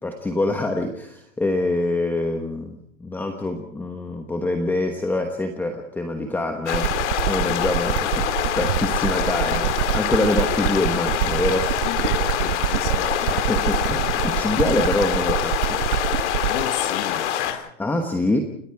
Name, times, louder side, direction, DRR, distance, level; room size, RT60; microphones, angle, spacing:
voice 1, 0.0-8.2 8.5-11.8 13.3-15.8 17.8-18.4, left 2 dB, 5° left, 4 dB, 1.1 m, -25 dB
sound 1, 6.7-17.5, left 10 dB, 60° left, 2.4 m, -25 dB
sound 2, 6.7-16.7, right 13 dB, 70° right, 1.0 m, -26 dB
voice 2, 11.8-13.1 16.5-17.7, left 12 dB, 40° left, 9 dB, 1.9 m, -32 dB
29.5 x 19.5 x 4.8 m, 0.66 s
supercardioid pair, 160°, 40 cm